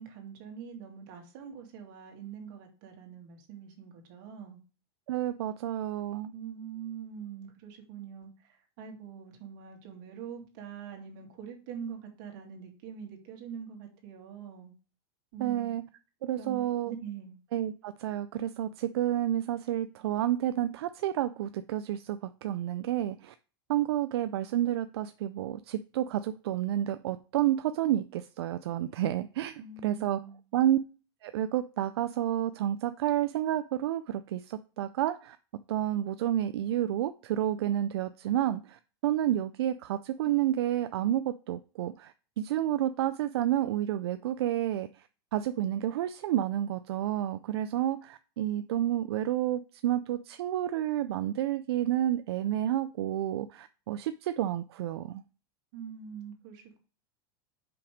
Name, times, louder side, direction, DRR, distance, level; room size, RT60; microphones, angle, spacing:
voice 1, 0.0-4.6 6.3-14.7 15.3-15.8 16.4-17.4 29.6-30.4 55.7-56.8, right 7 dB, 55° right, 2 dB, 2.2 m, -44 dB
voice 2, 5.1-6.3 15.4-15.8 16.2-16.9 17.5-23.3 23.7-30.2 30.5-30.8 31.2-35.4 35.7-55.2, right 12 dB, 80° right, 11 dB, 0.4 m, -30 dB
5.7 x 5.3 x 4.9 m, 0.36 s
supercardioid pair, 150°, 13 cm